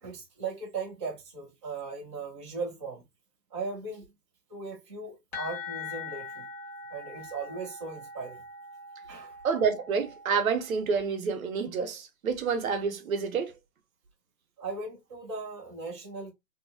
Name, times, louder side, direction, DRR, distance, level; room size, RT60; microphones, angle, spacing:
voice 1, 0.0-3.0 3.5-4.0 4.5-6.4 6.9-8.4 9.1-9.4 14.6-16.3, right 4 dB, 20° right, 0.5 m, -38 dB
sound 1, 5.3-10.9, left 4 dB, 40° left, 1.0 m, -42 dB
voice 2, 9.4-13.5, right 5 dB, 60° right, 0.8 m, -28 dB
2.6 x 2.3 x 2.5 m
hypercardioid pair, 145°, 48 cm